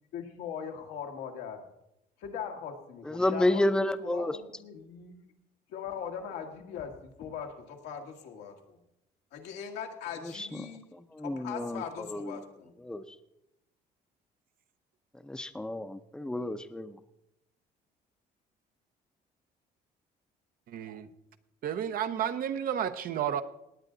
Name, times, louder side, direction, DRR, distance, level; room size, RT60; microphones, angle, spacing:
voice 1, 0.1-1.7 2.2-5.3 5.7-8.8 9.3-12.7, left 7 dB, 90° left, 2 dB, 1.8 m, -40 dB
voice 2, 3.0-4.4 10.2-12.5 12.8-13.2 15.2-17.0, left 1 dB, 5° left, 10 dB, 0.6 m, -31 dB
voice 3, 20.7-21.1 21.6-23.4, right 9 dB, 60° right, 11 dB, 0.8 m, -31 dB
18.0 x 8.9 x 3.9 m, 0.85 s
cardioid pair, 110°, 17 cm